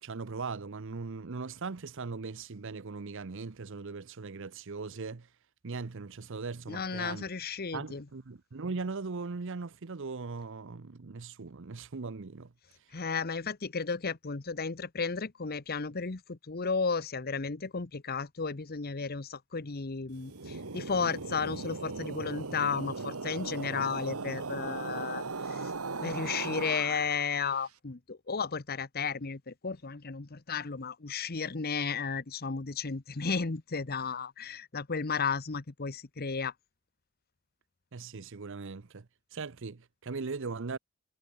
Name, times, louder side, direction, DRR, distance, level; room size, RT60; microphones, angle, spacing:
voice 1, 0.0-5.3 5.6-7.2 7.7-12.5 37.9-40.8, right 4 dB, 60° right, 0.7 m, -39 dB
voice 2, 6.7-8.0 12.9-25.7 26.0-36.5, left 5 dB, 45° left, 1.0 m, -34 dB
sound 1, 20.1-27.5, right 3 dB, 80° right, 1.6 m, -38 dB
head